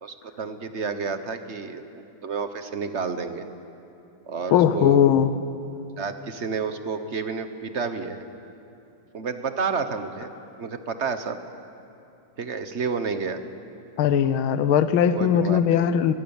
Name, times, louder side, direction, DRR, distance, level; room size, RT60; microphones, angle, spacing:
voice 1, 0.0-3.5 4.3-5.0 6.0-8.2 9.1-10.3 10.6-11.4 12.4-13.4 15.1-15.9, right 5 dB, 40° right, 9 dB, 1.2 m, -30 dB
voice 2, 4.5-5.3 14.0-16.1, left 9 dB, 90° left, 12 dB, 1.7 m, -19 dB
25.0 x 20.0 x 7.2 m, 2.8 s
omnidirectional pair, 2.2 m